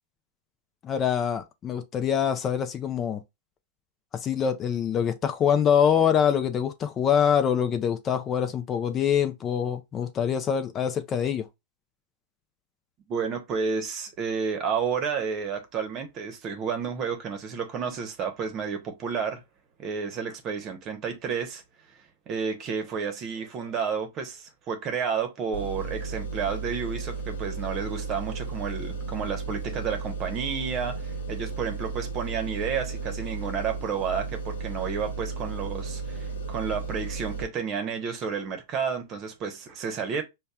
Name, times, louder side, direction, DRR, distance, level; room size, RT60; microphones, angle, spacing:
voice 1, 0.8-3.2 4.1-11.5, left 8 dB, 30° left, 0.5 m, -25 dB
voice 2, 13.1-19.4 19.8-21.6 22.3-40.2, right 6 dB, 35° right, 0.9 m, -31 dB
sound 1, 25.5-37.4, right 4 dB, 85° left, 0.9 m, -34 dB
5.2 x 2.3 x 2.3 m
hypercardioid pair, 110°, 0 cm